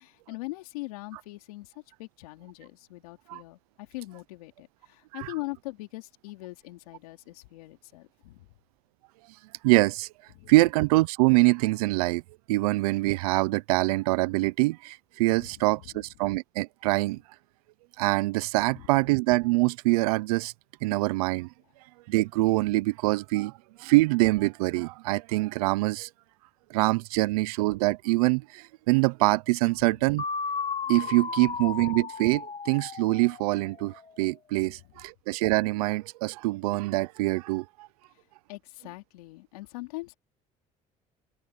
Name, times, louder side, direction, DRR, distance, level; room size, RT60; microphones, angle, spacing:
voice 1, 0.0-1.7 2.0-8.5 10.3-10.5 15.3-16.1 18.6-18.9 29.8-30.0 31.4-31.7 34.6-35.0 38.1-40.2, left 22 dB, 90° left, 3.5 m, -42 dB
voice 2, 9.6-10.1 10.5-12.2 12.5-17.2 18.0-20.5 20.8-21.5 22.1-23.5 23.8-26.1 26.7-30.2 30.9-37.9, right 21 dB, 90° right, 0.6 m, -24 dB
sound 1, 30.2-34.0, left 5 dB, 30° left, 1.5 m, -34 dB
supercardioid pair, 70°, 18 cm